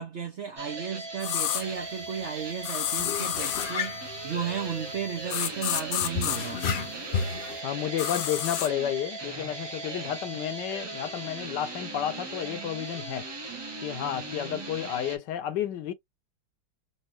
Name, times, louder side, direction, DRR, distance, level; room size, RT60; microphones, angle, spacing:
voice 1, 0.0-6.6, right 7 dB, 85° right, 0.6 m, -34 dB
sound 1, 0.6-15.2, right 3 dB, 40° right, 0.3 m, -38 dB
sound 2, 1.2-1.6 2.6-3.7 5.3-6.4 8.0-8.7, left 13 dB, 90° left, 1.4 m, -29 dB
sound 3, 1.6-1.7 2.0-2.2 3.0-5.1 6.0-7.6, left 5 dB, 55° left, 0.7 m, -33 dB
voice 2, 7.6-13.3 13.8-15.9, left 10 dB, 70° left, 1.2 m, -31 dB
4.3 x 2.5 x 2.9 m
omnidirectional pair, 2.1 m